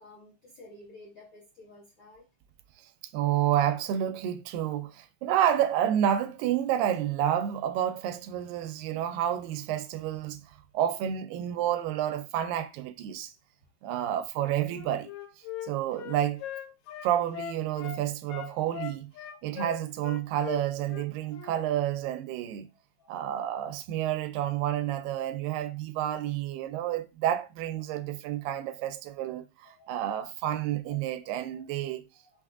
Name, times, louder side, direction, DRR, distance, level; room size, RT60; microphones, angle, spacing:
voice 1, 0.0-2.3 19.2-19.4 21.2-21.3 23.0-23.2 27.8-27.9 28.3-28.5 29.6-29.9 30.8-31.6 32.2-32.3, left 2 dB, 60° left, 1.3 m, -53 dB
voice 2, 3.1-13.3 13.8-15.1 15.6-16.4 17.0-19.1 19.4-22.7 23.1-32.1, right 11 dB, 85° right, 2.2 m, -29 dB
Wind instrument woodwind instrument, 14.6-18.0 18.3-21.6, left 11 dB, 90° left, 1.7 m, -40 dB
5.7 x 3.5 x 2.4 m
omnidirectional pair, 3.9 m